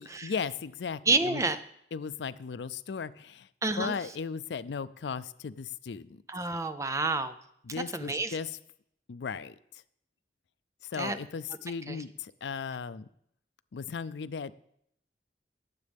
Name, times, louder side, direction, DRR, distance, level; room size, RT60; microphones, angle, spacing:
voice 1, 0.0-1.4 1.9-3.5 3.8-6.2 7.6-8.6 9.1-9.8 10.8-13.1 13.7-14.5, left 6 dB, 85° left, 15 dB, 0.4 m, -36 dB
voice 2, 1.1-1.6 3.6-3.9 6.3-7.3 7.9-8.4 11.0-11.2 11.9-12.0, right 3 dB, 15° right, 10 dB, 0.5 m, -29 dB
19.5 x 7.5 x 3.5 m, 0.72 s
head